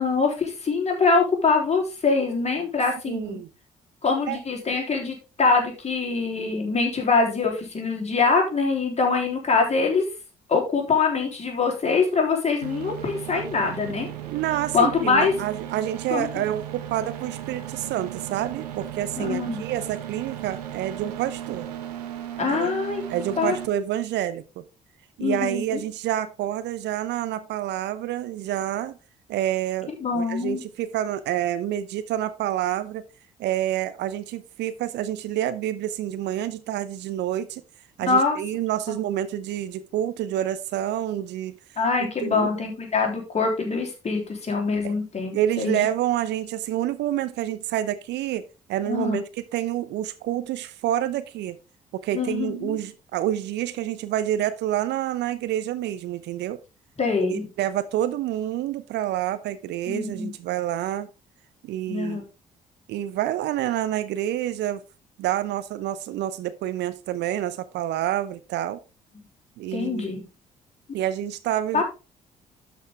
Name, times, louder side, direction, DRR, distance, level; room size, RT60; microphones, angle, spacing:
voice 1, 0.0-3.4 4.0-10.1 10.5-14.1 14.7-15.3 16.1-16.4 19.2-19.6 22.4-23.0 23.4-23.6 25.2-25.8 30.0-30.6 38.1-38.4 41.8-45.9 48.9-49.2 52.1-52.8 57.0-57.5 59.9-60.3 61.9-62.2 69.7-70.3 71.7-71.8, left 4 dB, 35° left, 3.6 m, -24 dB
voice 2, 3.1-3.5 4.3-4.4 14.3-21.7 22.5-22.7 23.1-24.6 25.2-29.0 29.3-33.0 33.4-37.6 38.0-41.5 42.2-42.5 44.8-44.9 45.3-48.4 48.7-49.2 49.5-51.6 51.9-56.6 57.2-61.1 61.6-62.2 62.9-64.8 65.2-68.8 69.6-70.1 70.9-71.8, right 12 dB, 60° right, 0.7 m, -28 dB
sound 1, 12.6-23.7, right 11 dB, 80° right, 1.0 m, -36 dB
12.0 x 5.3 x 3.6 m
figure-of-eight pair, 45°, 20 cm